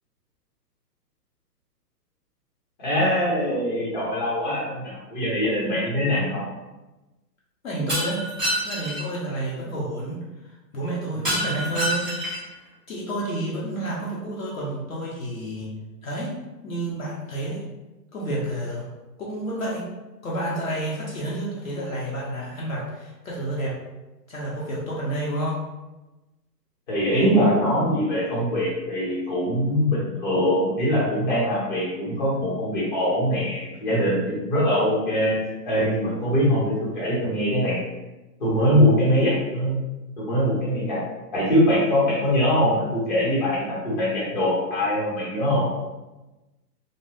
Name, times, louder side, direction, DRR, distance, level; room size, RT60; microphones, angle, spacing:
voice 1, 2.8-6.4 11.1-11.6 26.9-35.3 35.6-37.8 38.4-39.8 40.2-41.0 41.3-45.6, equal, 30° left, -7 dB, 0.9 m, -22 dB
voice 2, 7.6-8.3 8.6-12.0 12.9-15.7 16.0-16.3 16.6-17.6 18.1-18.9 19.2-19.9 20.2-23.7 24.3-25.6, right 1 dB, 55° left, -5 dB, 0.8 m, -30 dB
Shatter, 7.9-9.0 11.2-12.5, equal, ahead, 0.8 m, -27 dB
2.7 x 2.2 x 3.3 m, 1.1 s
hypercardioid pair, 165°, 50 cm